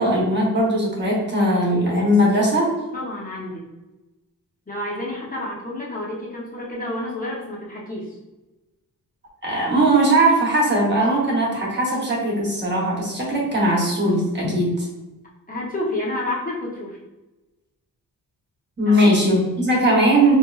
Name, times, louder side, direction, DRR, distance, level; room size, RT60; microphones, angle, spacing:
voice 1, 0.0-2.7 9.4-14.9 18.8-20.3, right 1 dB, 30° right, -3 dB, 0.9 m, -19 dB
voice 2, 2.9-3.7 4.7-8.2 15.5-17.0 18.8-19.2, left 1 dB, 25° left, -5 dB, 0.6 m, -29 dB
4.3 x 2.9 x 2.3 m, 1.0 s
wide cardioid pair, 180°, 36 cm